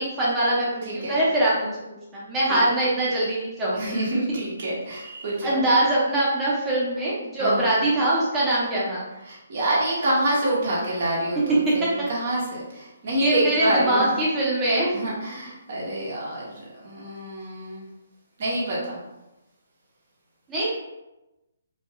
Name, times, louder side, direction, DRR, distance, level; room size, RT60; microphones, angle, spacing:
voice 1, 0.0-1.7 2.1-4.0 5.4-9.1 11.8-11.9 13.2-15.1 20.5-20.7, right 1 dB, 15° right, -7 dB, 1.1 m, -23 dB
voice 2, 0.8-1.2 2.5-2.6 3.8-5.6 7.4-7.6 9.2-14.1 14.9-17.8 18.4-19.0, right 1 dB, 45° right, -5 dB, 1.4 m, -27 dB
4.8 x 2.9 x 2.4 m, 0.97 s
figure-of-eight pair, 135°, 0 cm